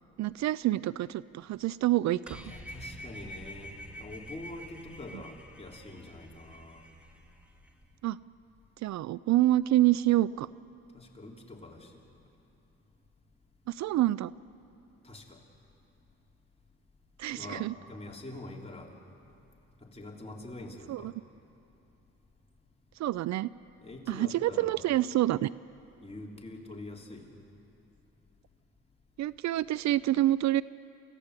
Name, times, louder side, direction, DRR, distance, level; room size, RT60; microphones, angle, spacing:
voice 1, 0.2-2.5 8.0-8.2 8.8-10.5 13.7-14.3 17.2-17.7 20.9-21.1 23.0-23.5 24.1-25.5 29.2-30.6, right 15 dB, 65° right, 19 dB, 0.5 m, -27 dB
sound 1, 2.3-7.9, equal, 5° right, 2.4 m, -47 dB
voice 2, 2.4-6.9 10.9-12.0 15.0-15.4 17.3-18.9 19.8-21.1 23.8-24.8 26.0-27.3, left 2 dB, 20° left, -1 dB, 3.5 m, -45 dB
29.0 x 15.5 x 8.3 m, 2.9 s
cardioid pair, 90°, 30 cm